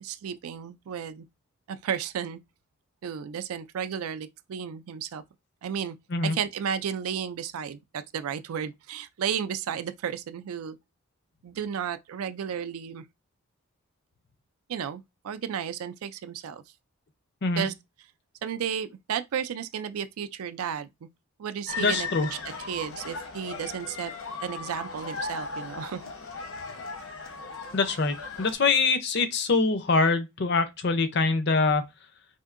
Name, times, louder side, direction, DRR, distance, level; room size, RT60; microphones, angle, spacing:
voice 1, 0.0-1.2 1.7-2.4 3.0-5.2 5.6-6.0 6.2-10.8 11.4-13.0 14.7-16.6 17.6-17.7 18.4-21.1 21.4-22.1 22.7-24.1 24.4-26.0, right 8 dB, 85° right, 0.4 m, -33 dB
sound 1, 21.7-28.5, left 4 dB, 70° left, 0.9 m, -37 dB
voice 2, 21.8-22.3 27.7-31.8, left 3 dB, 50° left, 0.5 m, -24 dB
4.2 x 2.6 x 2.5 m
head